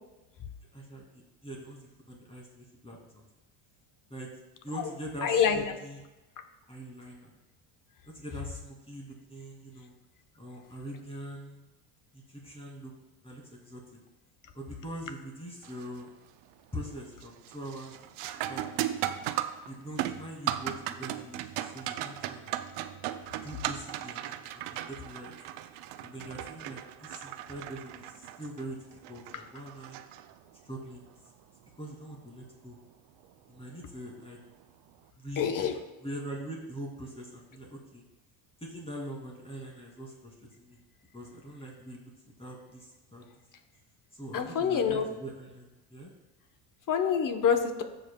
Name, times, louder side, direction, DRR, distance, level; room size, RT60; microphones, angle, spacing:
voice 1, 0.7-3.3 4.1-4.3 4.6-6.0 6.7-7.3 8.0-9.9 10.4-11.6 12.1-12.9 13.2-13.8 14.5-16.1 16.7-17.9 18.5-18.9 19.7-22.6 23.4-25.3 26.0-30.0 30.6-31.0 31.8-32.8 33.5-34.4 35.1-38.0 38.6-40.8 41.1-42.1 42.4-43.2 44.1-46.1, right 1 dB, 10° left, -2 dB, 2.5 m, -43 dB
voice 2, 5.2-5.6 29.3-29.4 35.4-35.8 44.3-45.1 46.9-47.8, left 7 dB, 40° left, 7 dB, 1.1 m, -26 dB
sound 1, 15.6-16.0 16.4-16.9 17.2-30.7 33.2-33.3 34.2-34.4, right 12 dB, 60° right, 0.6 m, -37 dB
14.5 x 5.3 x 2.3 m, 1.1 s
supercardioid pair, 85°, 48 cm